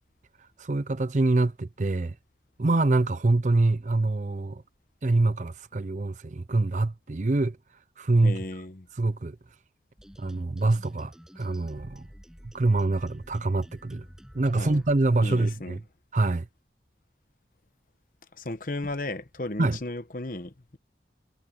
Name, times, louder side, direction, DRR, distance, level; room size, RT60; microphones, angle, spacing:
voice 1, 0.6-2.1 2.6-4.6 5.0-7.6 8.0-8.4 8.9-9.4 10.2-12.0 12.5-14.1 14.3-15.8 16.1-16.5 19.6-19.8, right 2 dB, 45° right, 0.6 m, -25 dB
voice 2, 8.2-8.9 14.5-14.8 15.2-15.8 18.4-20.8, left 2 dB, 50° left, 1.1 m, -35 dB
sound 1, 10.0-15.0, equal, 5° right, 7.3 m, -49 dB
head